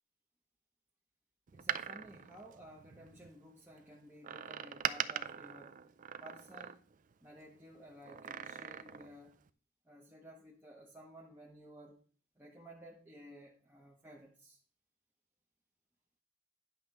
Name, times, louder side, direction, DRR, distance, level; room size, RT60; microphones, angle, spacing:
voice 1, 1.5-5.8 6.2-6.8 7.2-9.4 9.8-12.0 12.4-14.6, equal, 10° right, -2 dB, 0.8 m, -55 dB
Door, 1.5-3.3 4.2-7.1 8.0-9.2 9.5-9.6, right 8 dB, 35° right, 0.4 m, -41 dB
10.5 x 3.6 x 6.7 m, 0.43 s
head